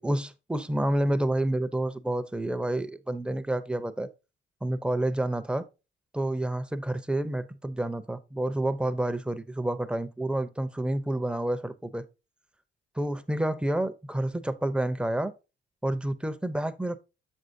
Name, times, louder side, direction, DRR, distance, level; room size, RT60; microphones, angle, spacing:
voice 1, 0.0-4.1 4.6-5.6 6.1-12.0 12.9-15.3 15.8-17.0, right 1 dB, 5° right, 0.6 m, -29 dB
7.3 x 6.4 x 2.6 m
cardioid pair, 90°, 20 cm